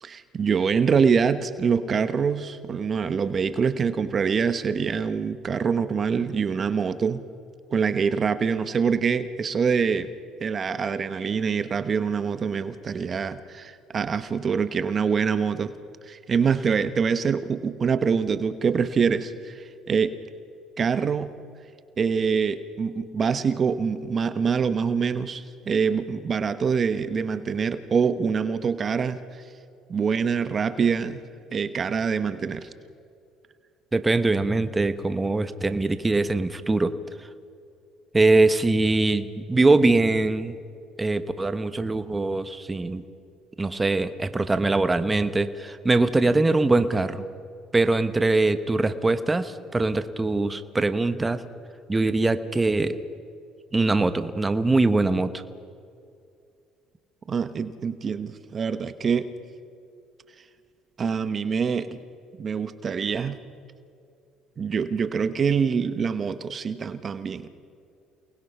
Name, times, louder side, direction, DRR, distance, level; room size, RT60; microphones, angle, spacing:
voice 1, 0.0-7.2 7.7-10.1 10.4-15.7 16.1-20.2 20.8-21.3 22.0-29.4 29.9-31.2 31.5-32.7 57.3-59.3 61.0-62.0 62.4-63.4 64.6-67.5, right 6 dB, 40° right, 11 dB, 1.1 m, -25 dB
voice 2, 33.9-36.9 38.1-40.6 41.0-43.0 43.6-47.2 47.7-51.4 51.9-53.0 53.7-55.3, right 2 dB, 20° right, 11 dB, 1.1 m, -22 dB
29.0 x 20.0 x 5.6 m, 2.4 s
supercardioid pair, 80°, 0 cm